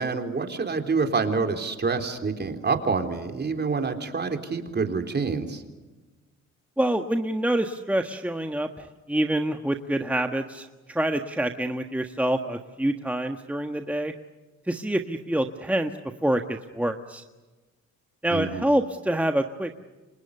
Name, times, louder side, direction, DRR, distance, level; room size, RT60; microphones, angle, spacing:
voice 1, 0.0-5.6 18.3-18.7, right 4 dB, 35° right, 5 dB, 4.0 m, -27 dB
voice 2, 6.8-10.7 10.9-14.1 14.7-15.9 16.2-17.2 18.2-19.9, right 1 dB, 5° right, 5 dB, 1.5 m, -26 dB
30.0 x 26.0 x 6.8 m, 1.2 s
cardioid pair, 90°, 30 cm